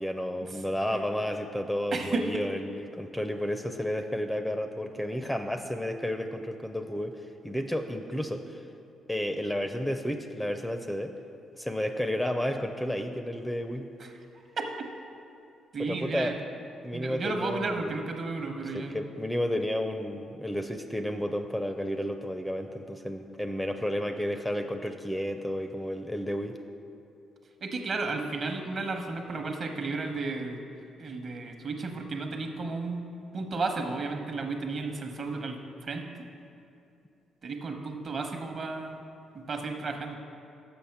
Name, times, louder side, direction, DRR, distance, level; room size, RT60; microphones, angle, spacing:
voice 1, 0.0-8.6 9.1-11.1 11.5-13.9 15.8-16.3 16.8-17.9 18.7-26.6, equal, 5° left, 7 dB, 0.4 m, -32 dB
voice 2, 1.9-2.2 14.0-14.1 14.6-14.8 15.7-16.4 16.9-19.0 27.6-30.6 31.0-33.0 33.3-36.3 37.4-39.0 39.5-40.2, right 3 dB, 50° right, 4 dB, 0.9 m, -33 dB
7.0 x 6.1 x 5.8 m, 2.7 s
cardioid pair, 90°, 0 cm